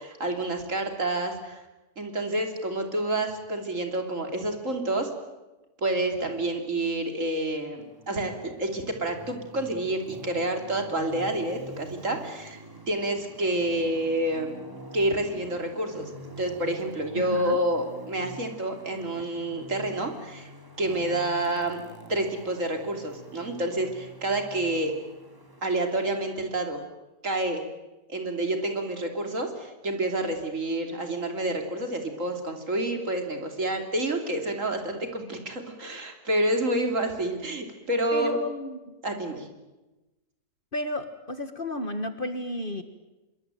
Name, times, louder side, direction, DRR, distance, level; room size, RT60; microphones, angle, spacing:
voice 1, 0.0-1.6 2.0-5.1 5.8-14.6 14.9-16.1 16.4-20.5 20.8-21.8 22.1-24.9 25.6-26.8 27.2-27.6 28.1-38.4 39.0-39.5, right 1 dB, 55° right, 5 dB, 3.5 m, -28 dB
Traffic noise roadway noise, 7.8-26.3, right 1 dB, 15° right, 2.6 m, -45 dB
voice 2, 17.1-17.6 38.1-38.9 40.7-42.8, left 1 dB, 35° left, 9 dB, 1.8 m, -32 dB
25.5 x 23.0 x 9.1 m, 1.1 s
omnidirectional pair, 1.6 m